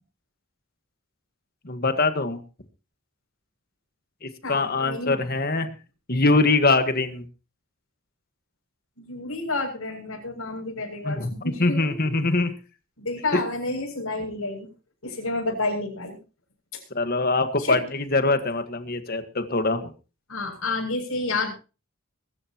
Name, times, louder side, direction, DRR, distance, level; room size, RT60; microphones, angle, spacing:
voice 1, 1.7-2.4 4.2-5.7 6.1-7.3 11.0-12.5 13.3-13.4 16.9-19.9, left 3 dB, 45° left, 9 dB, 1.6 m, -23 dB
voice 2, 4.4-5.2 9.0-12.1 13.0-14.7 15.0-16.2 17.6-17.8 20.3-21.5, left 2 dB, 80° left, 0 dB, 7.2 m, -30 dB
23.0 x 13.0 x 3.0 m, 0.33 s
head